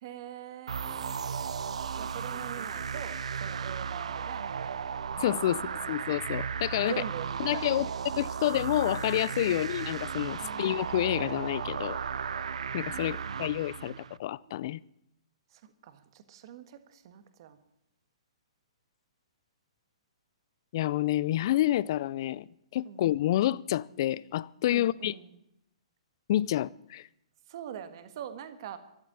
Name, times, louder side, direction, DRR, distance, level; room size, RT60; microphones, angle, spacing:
voice 1, 0.0-1.2 2.0-4.5 5.1-6.1 6.8-8.0 9.5-9.7 10.4-10.8 12.9-13.5 13.9-14.0 14.4-14.6 15.5-17.6 22.9-23.0 24.7-25.3 27.5-28.8, right 10 dB, 45° right, 1.6 m, -44 dB
sound 1, 0.7-14.2, right 6 dB, 80° right, 0.7 m, -35 dB
voice 2, 5.2-5.6 5.9-6.9 7.4-7.9 8.2-12.0 12.7-13.9 14.2-14.8 20.7-22.5 22.7-25.1 26.3-27.1, left 13 dB, 45° left, 0.5 m, -28 dB
13.5 x 11.0 x 8.7 m
hypercardioid pair, 160°, 3 cm